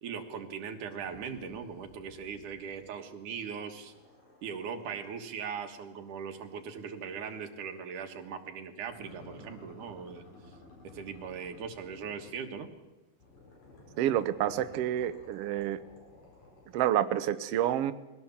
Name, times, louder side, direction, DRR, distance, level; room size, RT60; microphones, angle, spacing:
voice 1, 0.0-3.9 4.4-10.3 10.8-12.7, right 6 dB, 85° right, 6 dB, 3.1 m, -40 dB
sound 1, 1.0-3.0 3.4-7.9 8.9-12.7 13.2-16.9, left 2 dB, 70° left, 6.2 m, -55 dB
voice 2, 14.0-15.8 16.7-17.9, right 11 dB, 70° right, 11 dB, 1.6 m, -28 dB
21.0 x 17.0 x 7.2 m, 1.1 s
omnidirectional pair, 3.5 m